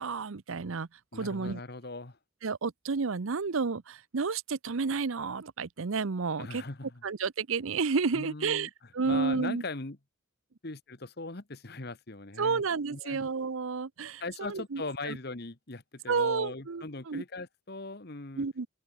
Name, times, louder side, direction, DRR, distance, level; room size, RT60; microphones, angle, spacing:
voice 1, 0.0-1.6 2.4-6.6 7.0-9.6 12.4-15.2 16.1-17.2 18.4-18.7, right 4 dB, 75° right, 0.7 m, -31 dB
voice 2, 1.1-2.2 6.4-7.0 8.1-8.7 9.0-10.0 10.6-12.6 12.9-13.2 14.2-18.5, left 3 dB, 50° left, 1.4 m, -39 dB
open air
head